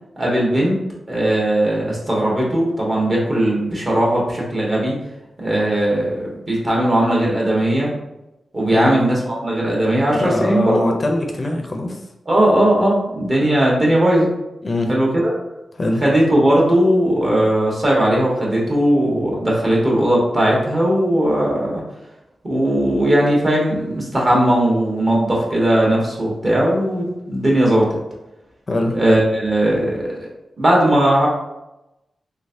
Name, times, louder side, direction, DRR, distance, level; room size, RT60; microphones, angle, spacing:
voice 1, 0.2-0.8 1.1-4.9 5.4-7.9 8.5-10.7 12.3-14.3 14.9-15.3 16.0-21.8 22.4-27.9 28.9-30.1 30.6-31.3, right 1 dB, 35° right, -4 dB, 1.2 m, -18 dB
voice 2, 8.7-9.0 10.1-12.0 14.6-14.9 15.8-16.0 28.7-29.0, left 2 dB, 40° left, 2 dB, 0.4 m, -22 dB
3.4 x 3.0 x 2.7 m, 0.94 s
wide cardioid pair, 85°, 0 cm